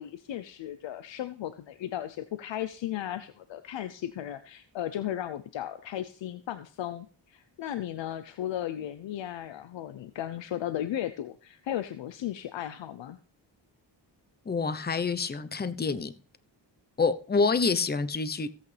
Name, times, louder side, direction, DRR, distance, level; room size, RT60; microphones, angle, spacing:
voice 1, 0.0-13.2, left 11 dB, 80° left, 0.7 m, -35 dB
voice 2, 14.5-16.1 17.0-18.5, left 4 dB, 20° left, 0.8 m, -27 dB
16.0 x 8.4 x 3.4 m
cardioid pair, 70°, 44 cm